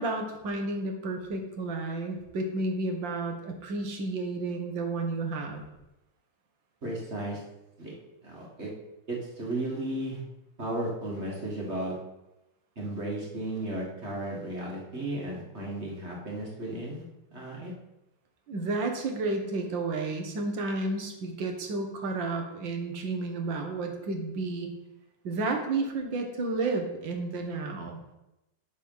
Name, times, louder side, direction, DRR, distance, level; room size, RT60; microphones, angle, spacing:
voice 1, 0.0-5.6 18.5-24.7 25.2-28.0, right 3 dB, 65° right, 3 dB, 2.0 m, -31 dB
voice 2, 6.8-7.4 7.8-7.9 8.2-8.7 9.1-10.2 10.6-12.0 12.8-17.0 17.3-17.7, right 1 dB, 35° right, -3 dB, 2.2 m, -34 dB
11.5 x 4.2 x 5.6 m, 0.93 s
omnidirectional pair, 2.2 m